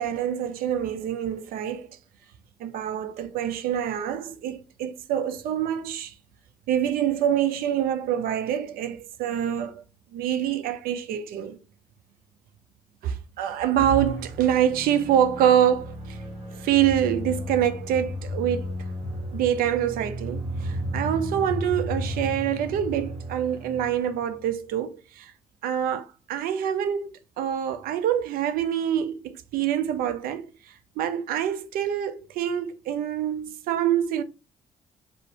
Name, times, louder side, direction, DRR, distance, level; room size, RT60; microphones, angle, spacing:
voice 1, 0.0-1.9 2.6-6.1 6.7-9.8 10.1-11.6 13.0-16.2 16.5-18.7 19.3-25.3 25.6-30.5 31.0-34.2, right 10 dB, 70° right, 0.4 m, -26 dB
sound 1, 13.8-24.5, equal, 40° right, 1.1 m, -34 dB
2.5 x 2.1 x 2.7 m
hypercardioid pair, 50°, 16 cm